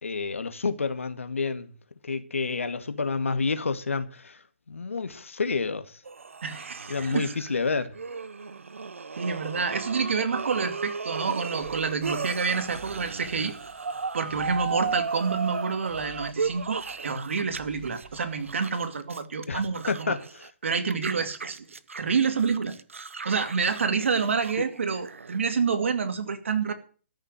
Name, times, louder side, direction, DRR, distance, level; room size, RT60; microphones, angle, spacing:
voice 1, 0.0-1.7 2.0-6.0 6.9-7.9 19.5-19.6 19.9-20.5 24.6-24.7, left 4 dB, 90° left, 2.0 m, -29 dB
sound 1, 6.1-17.6 17.8-20.5 20.9-25.4, right 5 dB, 90° right, 0.9 m, -35 dB
voice 2, 6.4-7.3 9.2-13.6 14.1-20.2 20.6-21.6 22.0-22.8 23.2-26.7, right 5 dB, 70° right, 2.3 m, -28 dB
sound 2, 11.5-18.9, right 4 dB, 50° right, 6.9 m, -51 dB
14.0 x 6.8 x 9.0 m
hypercardioid pair, 150°, 7 cm